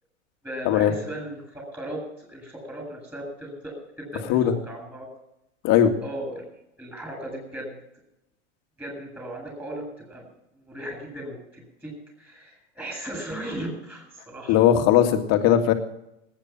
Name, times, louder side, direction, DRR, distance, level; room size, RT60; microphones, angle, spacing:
voice 1, 0.4-5.1 6.0-6.4 6.8-7.7 8.8-10.3 10.5-14.7, right 1 dB, 5° right, 1 dB, 7.8 m, -37 dB
voice 2, 14.5-15.7, left 10 dB, 40° left, 5 dB, 2.3 m, -18 dB
19.0 x 9.8 x 6.0 m, 0.83 s
hypercardioid pair, 115°, 38 cm